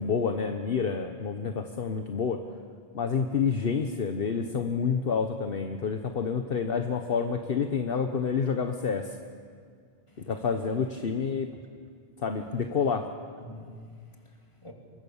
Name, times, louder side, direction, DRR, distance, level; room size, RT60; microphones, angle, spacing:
voice 1, 0.0-2.4 2.9-9.2 10.3-11.5 12.2-13.0, left 6 dB, 60° left, 6 dB, 1.2 m, -28 dB
voice 2, 10.1-10.5 11.0-11.2 12.4-12.5 13.4-14.7, left 1 dB, 25° left, 1 dB, 3.0 m, -47 dB
26.0 x 23.0 x 7.2 m, 2.1 s
omnidirectional pair, 1.1 m